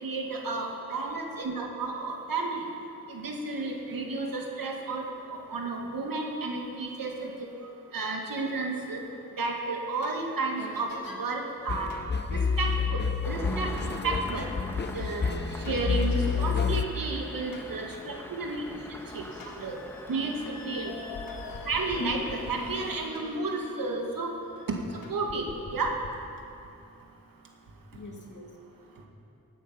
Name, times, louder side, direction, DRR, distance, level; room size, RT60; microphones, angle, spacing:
voice 1, 0.0-2.7 3.1-7.3 7.9-9.0 9.4-10.9 11.2-11.9 12.3-13.7 14.0-14.5 14.9-18.6 19.1-19.2 19.6-19.8 20.1-20.9 21.6-24.3 24.7-24.8 25.1-25.5 25.7-25.9, right 3 dB, 75° right, 1 dB, 2.1 m, -32 dB
sound 1, 10.0-10.2 10.6-11.2 11.9-12.1 13.8-13.9 15.6-17.7 18.3-18.4 19.0-24.7 25.0-26.1, left 3 dB, 75° left, 1.8 m, -43 dB
sound 2, 11.7-16.9, left 5 dB, 30° left, 0.7 m, -29 dB
Engine starting, 13.2-22.9, equal, 5° left, 1.6 m, -44 dB
voice 2, 18.3-18.8 19.7-19.8 21.4-21.6 27.9-29.1, left 1 dB, 55° left, 1 dB, 2.3 m, -50 dB
16.0 x 9.3 x 5.8 m, 2.7 s
cardioid pair, 45°, 35 cm